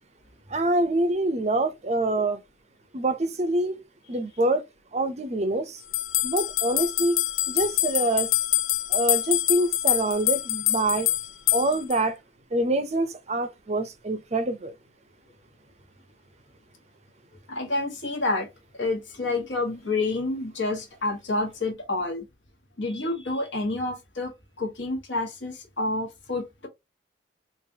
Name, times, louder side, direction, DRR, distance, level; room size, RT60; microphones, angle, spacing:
voice 1, 0.5-2.4 2.9-3.8 4.1-4.6 4.9-5.8 6.2-7.2 7.5-8.3 8.9-11.1 11.5-12.1 12.5-14.7, right 2 dB, 35° right, 0.5 m, -25 dB
sound 1, 5.9-12.0, left 15 dB, 85° left, 0.4 m, -25 dB
voice 2, 17.5-18.5 18.8-22.2 22.8-24.3 24.6-26.7, left 2 dB, 65° left, 1.2 m, -28 dB
3.8 x 2.5 x 2.7 m
head